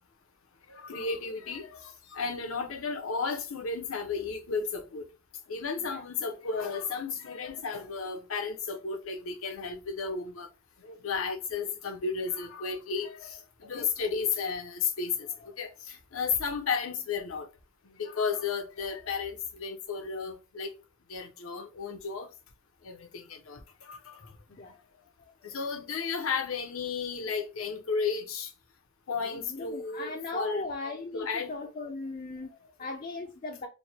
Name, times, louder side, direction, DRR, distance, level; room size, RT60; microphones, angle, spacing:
voice 1, 0.7-5.1 5.5-10.5 10.8-15.3 15.6-17.5 18.0-20.7 21.1-22.3 22.8-23.6 23.9-24.2 25.4-28.5 29.1-30.7 31.1-31.5, left 5 dB, 75° left, 0.7 m, -33 dB
voice 2, 24.5-24.8 25.2-25.6 29.5-33.7, left 3 dB, 40° left, 0.5 m, -38 dB
3.1 x 2.1 x 4.2 m
head